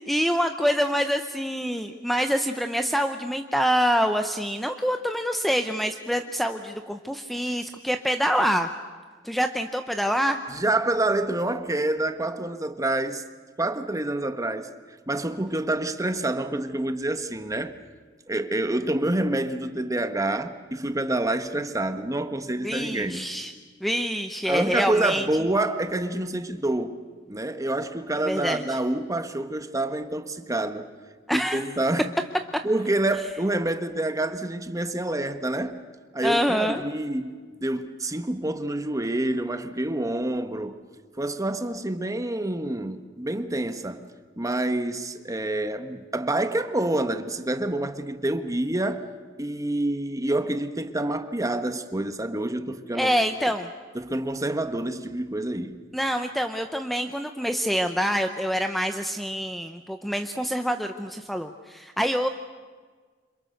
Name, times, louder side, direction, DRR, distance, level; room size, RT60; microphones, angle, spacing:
voice 1, 0.0-8.7 9.2-10.4 22.6-23.5 23.8-25.3 28.3-28.8 31.3-31.6 36.2-36.8 52.9-53.7 55.9-62.3, equal, ahead, 0.8 m, -26 dB
voice 2, 10.5-13.2 13.6-14.7 15.1-17.8 18.3-23.3 24.4-27.0 27.3-30.9 31.3-32.1 32.6-35.8 36.1-40.7 41.2-44.1 44.4-49.1 49.4-53.1 53.9-55.8, right 1 dB, 20° right, 1.3 m, -27 dB
29.5 x 27.0 x 6.6 m
head